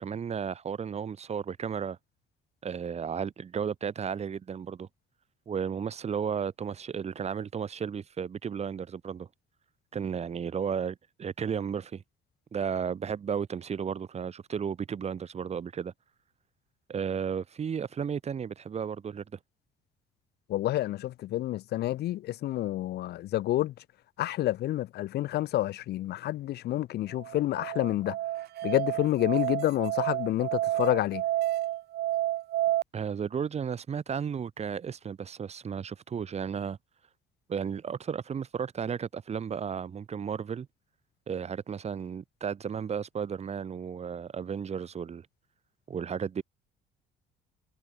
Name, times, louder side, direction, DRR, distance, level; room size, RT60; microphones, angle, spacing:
voice 1, 0.0-2.0 2.6-4.9 5.5-9.3 9.9-12.0 12.5-15.9 16.9-19.4 32.9-36.8 37.5-40.7 41.3-45.3 45.9-46.4, right 7 dB, 40° right, 4.4 m, -33 dB
voice 2, 20.5-23.7 24.2-28.2 28.6-31.2, left 14 dB, 75° left, 7.0 m, -29 dB
Musical instrument, 27.1-32.8, right 14 dB, 70° right, 5.4 m, -30 dB
cardioid pair, 110°, 17 cm